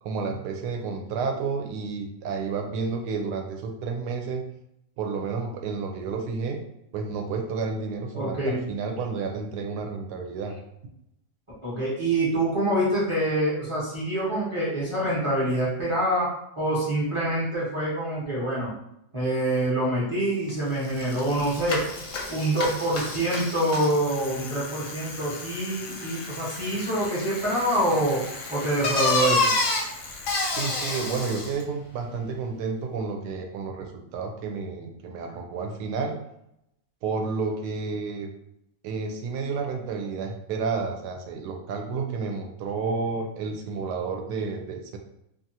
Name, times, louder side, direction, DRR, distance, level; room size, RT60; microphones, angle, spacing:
voice 1, 0.0-4.5 5.0-6.6 6.9-10.5 30.5-36.1 37.0-38.3 38.8-45.0, right 4 dB, 75° right, 3 dB, 1.1 m, -31 dB
voice 2, 8.1-8.6 11.6-18.7 19.1-21.8 22.3-28.2 28.5-29.5, right 1 dB, 25° right, -8 dB, 0.7 m, -26 dB
Bicycle, 20.5-20.6 20.8-31.6, left 3 dB, 65° left, 0.8 m, -30 dB
2.8 x 2.5 x 2.7 m, 0.80 s
omnidirectional pair, 1.8 m